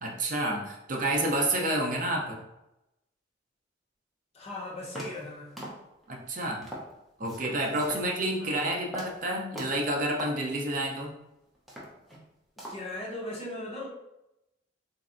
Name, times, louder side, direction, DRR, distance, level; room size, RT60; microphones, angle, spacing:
voice 1, 0.0-2.4 6.1-6.6 7.2-11.1, right 1 dB, 45° right, 0 dB, 0.6 m, -29 dB
voice 2, 4.3-5.6 8.4-8.8 12.7-13.9, left 1 dB, 35° left, -4 dB, 0.9 m, -38 dB
sound 1, 4.4-4.5 4.9-5.3 5.6-6.1 6.6-6.9 7.2-8.1 8.4-8.6 8.9-9.2 9.5-9.9 10.2-10.4 10.9-11.0 11.5-12.3 12.6-13.0, equal, ahead, 0.7 m, -41 dB
3.9 x 3.1 x 2.5 m, 0.90 s
head